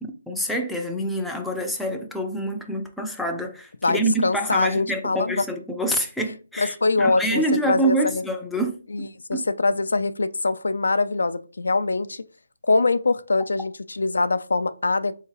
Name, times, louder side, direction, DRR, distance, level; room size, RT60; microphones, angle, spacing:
voice 1, 0.0-8.8 9.3-9.5, right 1 dB, ahead, 0.4 m, -26 dB
voice 2, 3.8-5.4 6.6-8.2 8.9-12.2 12.6-15.1, left 3 dB, 80° left, 0.3 m, -23 dB
3.6 x 2.8 x 2.8 m
hypercardioid pair, 165°, 0 cm